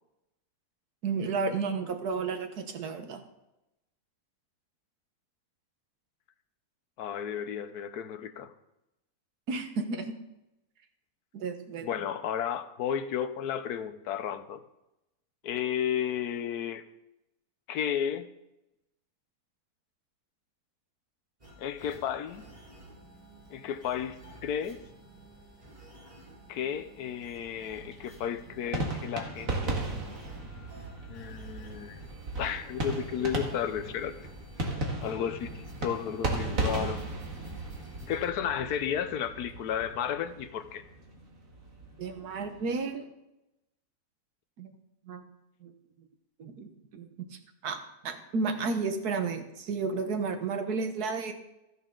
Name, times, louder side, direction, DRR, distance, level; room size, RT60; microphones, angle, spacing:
voice 1, 1.0-3.2 9.5-10.1 11.3-11.9 42.0-43.1 44.6-44.8 45.0-45.2 45.6-45.7 46.4-47.3 47.6-51.3, right 4 dB, 90° right, 7 dB, 1.6 m, -32 dB
voice 2, 7.0-8.5 11.8-14.6 15.4-16.8 17.7-18.3 21.6-22.4 23.5-24.8 26.5-29.8 31.1-32.0 32.4-34.3 35.0-37.0 38.1-40.8, left 9 dB, 85° left, 12 dB, 1.3 m, -33 dB
sound 1, 21.4-38.3, right 1 dB, 25° right, 3.1 m, -51 dB
sound 2, 27.7-42.8, right 2 dB, 60° right, 2.2 m, -36 dB
14.0 x 9.9 x 3.8 m, 0.92 s
omnidirectional pair, 1.6 m